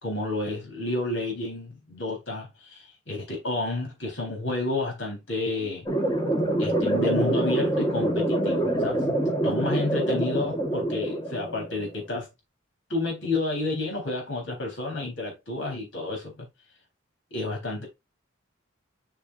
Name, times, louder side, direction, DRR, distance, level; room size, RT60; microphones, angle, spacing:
voice 1, 0.0-5.9 6.6-9.0 9.4-12.3 12.9-16.5 17.3-17.9, left 2 dB, 75° left, 3.7 m, -30 dB
sound 1, 5.9-11.9, right 1 dB, 20° left, 1.3 m, -25 dB
7.0 x 5.8 x 2.5 m
head